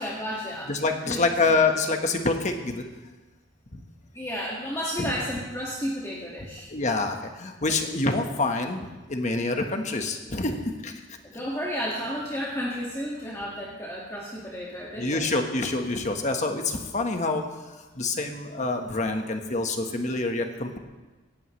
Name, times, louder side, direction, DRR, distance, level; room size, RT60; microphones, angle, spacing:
voice 1, 0.0-0.7 1.1-1.2 4.1-6.7 11.2-15.3, equal, 15° left, -5 dB, 2.0 m, -32 dB
voice 2, 0.7-2.8 5.0-5.1 6.7-10.9 15.0-17.4 18.0-20.8, left 3 dB, 40° left, 4 dB, 1.4 m, -26 dB
18.0 x 15.5 x 3.3 m, 1.2 s
head